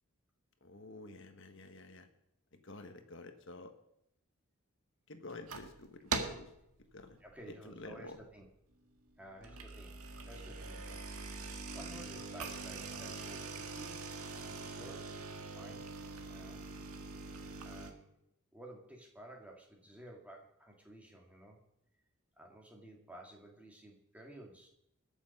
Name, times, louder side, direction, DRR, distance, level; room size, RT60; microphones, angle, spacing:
voice 1, 0.6-2.1 2.6-3.7 5.1-6.5 6.9-7.2 7.6-8.2, left 2 dB, 55° left, 7 dB, 1.4 m, -50 dB
sound 1, 5.3-5.8 6.1-6.6 7.0-7.3 7.8-7.9 8.2-8.3 9.3-17.9, right 4 dB, 85° right, 1.7 m, -43 dB
voice 2, 7.2-8.5 9.2-15.9 16.3-16.6 17.6-18.2 18.5-21.6 22.4-24.7, right 1 dB, 5° right, 0 dB, 2.2 m, -54 dB
21.0 x 7.2 x 5.4 m, 0.80 s
head